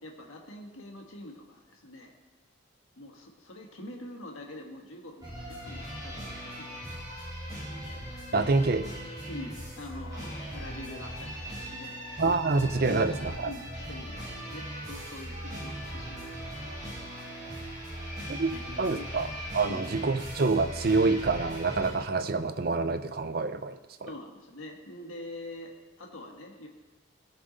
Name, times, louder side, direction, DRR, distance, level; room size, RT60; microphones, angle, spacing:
voice 1, 0.0-2.1 3.0-7.1 8.3-8.6 9.3-12.0 12.9-17.3 17.6-17.9 18.5-19.1 19.6-19.8 24.0-25.7 26.0-26.7, left 1 dB, 90° left, 1 dB, 1.5 m, -45 dB
Funk-Rock-Improvisation, 5.2-21.9, equal, 20° right, 4.6 m, -39 dB
voice 2, 8.3-8.8 12.2-13.5 18.3-18.5 18.8-19.3 19.5-24.1, right 3 dB, 45° right, 11 dB, 0.5 m, -27 dB
17.5 x 7.2 x 4.0 m, 1.2 s
head